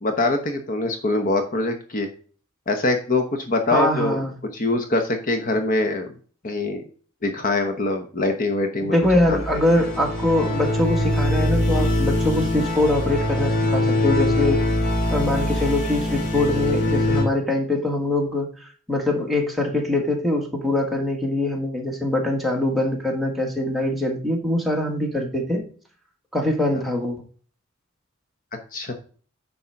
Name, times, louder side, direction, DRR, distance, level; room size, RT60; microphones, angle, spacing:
voice 1, 0.0-2.1 2.7-4.2 4.5-6.1 6.4-6.8 7.2-9.0 9.3-9.4 28.7-28.9, left 2 dB, 40° left, 5 dB, 1.0 m, -23 dB
voice 2, 3.7-4.4 8.8-14.6 15.1-18.5 18.9-25.6 26.3-27.2, left 1 dB, ahead, 0 dB, 1.7 m, -23 dB
sound 1, 9.0-17.2, left 1 dB, 60° left, 2.4 m, -23 dB
9.8 x 4.0 x 5.8 m, 0.42 s
head